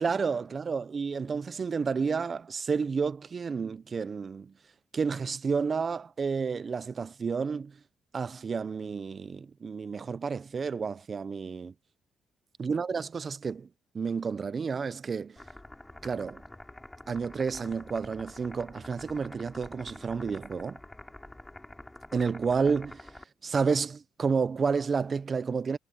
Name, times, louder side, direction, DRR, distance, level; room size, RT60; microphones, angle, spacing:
voice 1, 0.0-4.5 4.9-7.7 8.1-11.7 12.6-13.7 13.9-15.4 16.0-16.4 17.1-20.8 22.1-23.1 23.4-25.8, right 5 dB, 40° right, 0.6 m, -30 dB
sound 1, 15.4-23.2, left 1 dB, 10° left, 6.2 m, -47 dB
cardioid pair, 90°, 0 cm